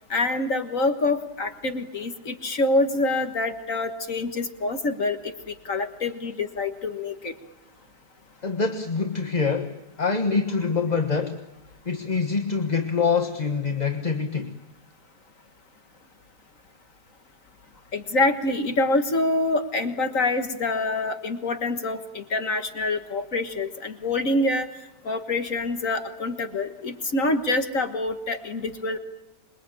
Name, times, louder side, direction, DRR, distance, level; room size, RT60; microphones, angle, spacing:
voice 1, 0.1-7.3 17.9-24.7 25.0-29.0, left 2 dB, 50° left, 7 dB, 1.8 m, -26 dB
voice 2, 8.4-11.4 11.8-14.6, left 5 dB, 25° left, 5 dB, 1.3 m, -25 dB
26.5 x 22.5 x 8.9 m, 0.87 s
omnidirectional pair, 1.8 m